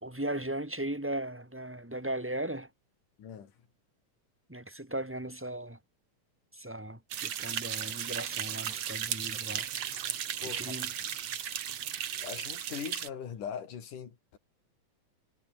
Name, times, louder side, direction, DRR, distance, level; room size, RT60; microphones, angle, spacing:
voice 1, 0.0-2.7 4.5-5.8 6.5-9.7 10.4-10.9, right 1 dB, 5° right, 2.3 m, -37 dB
voice 2, 3.2-3.5 10.4-10.8 11.3-11.4 12.2-14.4, left 8 dB, 80° left, 4.3 m, -41 dB
sound 1, 7.1-13.1, right 10 dB, 55° right, 2.4 m, -35 dB
omnidirectional pair, 3.6 m